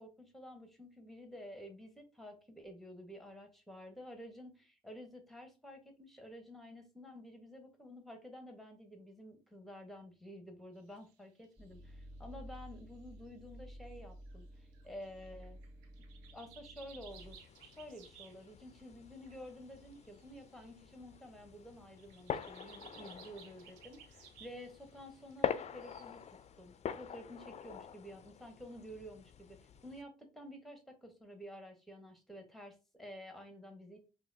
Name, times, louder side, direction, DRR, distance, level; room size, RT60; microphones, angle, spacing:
voice 1, 0.0-15.6 16.3-26.2 26.6-29.6 29.8-34.0, equal, ahead, 5 dB, 1.2 m, -51 dB
sound 1, 10.9-11.1 11.4-11.8 12.3-12.8 13.3-13.4 14.3-14.4 14.7-18.8 19.1-20.8 21.7-26.3, right 8 dB, 70° right, 0.6 m, -59 dB
sound 2, 11.6-17.4, equal, 30° right, 2.1 m, -53 dB
sound 3, 17.1-30.0, left 8 dB, 35° left, 0.4 m, -45 dB
5.4 x 2.4 x 2.6 m, 0.31 s
figure-of-eight pair, 45°, 20 cm